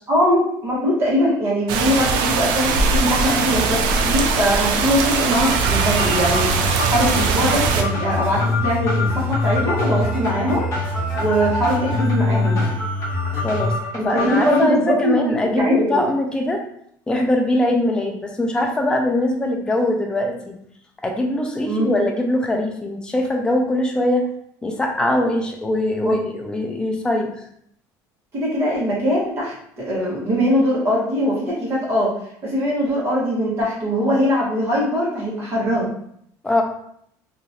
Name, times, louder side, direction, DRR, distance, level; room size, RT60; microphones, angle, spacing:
voice 1, 0.1-10.6 11.2-12.7 14.0-16.0 21.6-22.0 26.0-26.2 28.3-32.1 32.4-35.9, equal, 35° right, -7 dB, 1.4 m, -21 dB
sound 1, 1.7-7.8, right 4 dB, 70° right, 0.4 m, -20 dB
sound 2, 5.4-14.6, left 1 dB, 40° left, 1.1 m, -29 dB
sound 3, 6.2-13.7, left 2 dB, 15° right, 1.2 m, -24 dB
voice 2, 13.3-13.8 14.0-16.6 17.1-20.6 21.0-24.2 24.6-26.2 26.4-27.3 36.4-36.6, left 1 dB, 10° left, 2 dB, 0.4 m, -21 dB
2.9 x 2.5 x 2.8 m, 0.70 s
cardioid pair, 140°, 8 cm